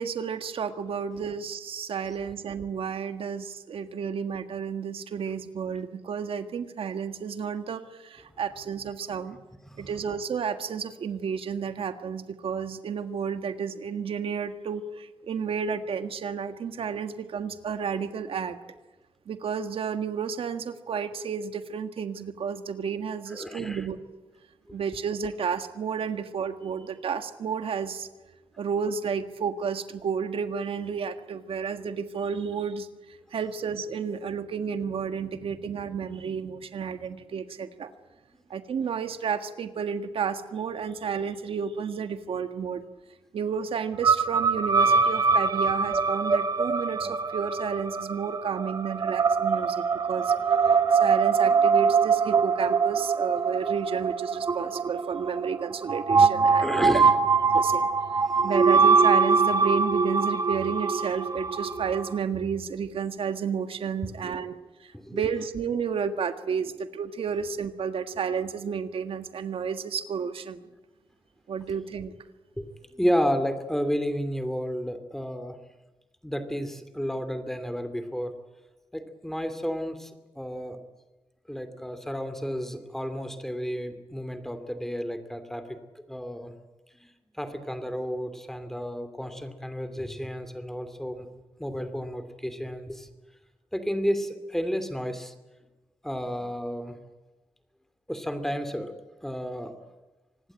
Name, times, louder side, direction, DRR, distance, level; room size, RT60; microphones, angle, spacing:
voice 1, 0.0-9.4 9.8-18.6 19.3-24.0 24.7-28.1 28.6-32.9 33.3-37.9 38.5-42.8 43.3-50.3 51.0-57.0 57.5-57.9 58.4-64.5 65.1-70.6 71.5-72.1, right 6 dB, 80° right, 9 dB, 1.6 m, -31 dB
voice 2, 23.3-23.8 56.6-57.1 64.0-64.4 64.9-65.2 72.6-72.7 72.9-75.6 76.2-78.3 78.9-80.1 80.4-80.8 81.5-85.6 86.1-86.5 87.4-91.3 91.6-93.1 93.7-95.3 96.0-97.0 98.1-98.9 99.2-99.7, equal, 5° left, 9 dB, 2.6 m, -31 dB
sound 1, 44.0-62.2, right 5 dB, 40° right, 1.0 m, -23 dB
25.0 x 20.0 x 9.2 m, 1.1 s
wide cardioid pair, 145°, 9 cm